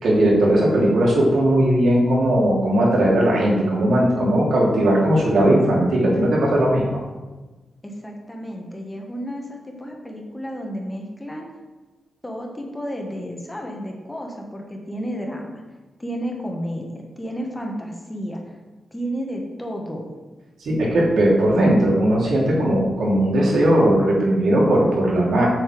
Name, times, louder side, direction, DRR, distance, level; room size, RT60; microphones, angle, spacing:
voice 1, 0.0-7.0 20.6-25.5, right 1 dB, 70° right, -4 dB, 2.9 m, -18 dB
voice 2, 7.8-11.5 12.2-15.6 16.0-18.4 18.9-20.1, equal, 10° left, 1 dB, 1.4 m, -32 dB
7.8 x 7.0 x 5.1 m, 1.2 s
wide cardioid pair, 130°, 0 cm